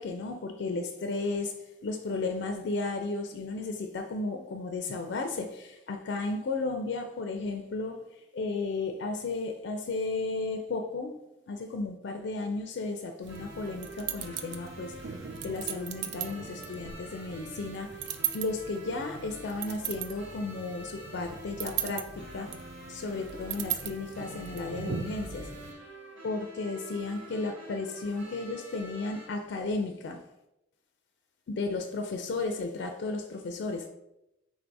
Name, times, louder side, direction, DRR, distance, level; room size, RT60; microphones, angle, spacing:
voice 1, 0.0-1.5 1.8-15.0 15.4-22.5 22.9-25.7 26.2-30.2 31.5-33.9, left 3 dB, 60° left, 5 dB, 0.4 m, -34 dB
sound 1, 13.2-25.7, right 9 dB, 60° right, 0.4 m, -39 dB
sound 2, 13.3-29.3, right 1 dB, 80° right, 1.3 m, -47 dB
3.9 x 2.6 x 4.5 m, 0.88 s
head